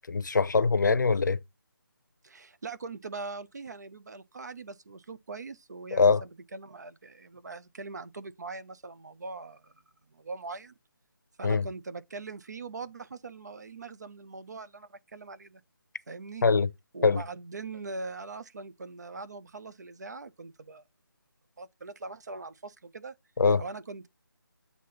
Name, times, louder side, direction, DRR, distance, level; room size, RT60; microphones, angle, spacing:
voice 1, 0.1-1.4 5.9-6.2 11.4-11.7 16.4-16.7 17.0-17.2 23.4-23.6, left 4 dB, 55° left, 0.7 m, -23 dB
voice 2, 2.2-9.7 10.1-10.7 11.4-15.6 16.1-16.4 16.9-20.8 21.6-23.1 23.6-24.1, right 3 dB, 50° right, 0.6 m, -41 dB
8.1 x 2.8 x 5.7 m
figure-of-eight pair, 170°, 12 cm